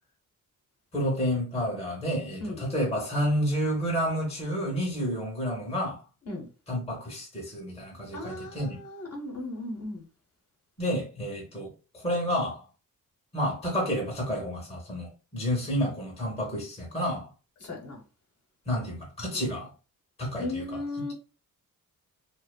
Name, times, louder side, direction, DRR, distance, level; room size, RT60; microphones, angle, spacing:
voice 1, 0.9-6.0 6.7-8.8 10.8-11.7 11.9-12.6 13.3-17.3 18.7-19.7 20.2-20.8, equal, 20° left, 0.7 m, -30 dB
voice 2, 8.1-10.0 17.6-18.0 19.3-19.5 20.4-21.1, left 2 dB, 50° left, 0.9 m, -36 dB
2.5 x 2.3 x 2.2 m
wide cardioid pair, 145°, 33 cm